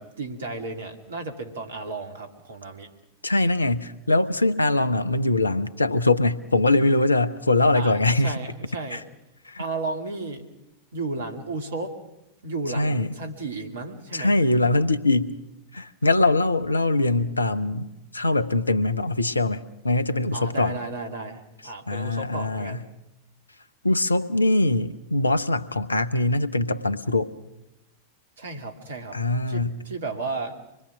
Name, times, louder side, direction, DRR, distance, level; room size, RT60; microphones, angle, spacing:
voice 1, 0.0-2.9 7.7-9.0 9.6-10.5 10.9-11.9 12.4-14.3 20.3-22.8 28.4-29.2 29.5-30.6, right 3 dB, 65° right, 4 dB, 2.5 m, -33 dB
voice 2, 3.2-8.3 8.9-9.0 9.5-9.6 12.8-13.1 14.1-15.4 15.7-20.8 21.9-22.8 23.8-27.3 29.1-29.8, left 2 dB, 80° left, 14 dB, 0.9 m, -22 dB
25.5 x 21.0 x 6.1 m, 0.92 s
figure-of-eight pair, 90°, 0 cm